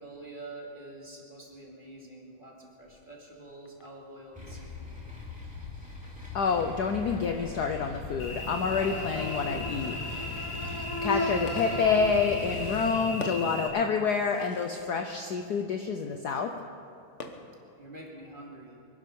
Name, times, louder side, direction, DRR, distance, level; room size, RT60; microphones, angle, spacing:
voice 1, 0.0-5.0 17.8-18.8, right 2 dB, 25° right, -2 dB, 2.5 m, -46 dB
Fireworks, 2.9-17.9, left 3 dB, 45° left, 1.0 m, -50 dB
sound 1, 4.3-12.9, left 4 dB, 5° right, 3.0 m, -42 dB
voice 2, 6.3-9.9 10.3-10.5 11.0-16.5, left 5 dB, 65° left, 5 dB, 1.1 m, -28 dB
Cricket / Buzz, 8.2-13.7, left 1 dB, 80° left, 3.0 m, -34 dB
23.5 x 11.5 x 5.4 m, 2.6 s
omnidirectional pair, 2.4 m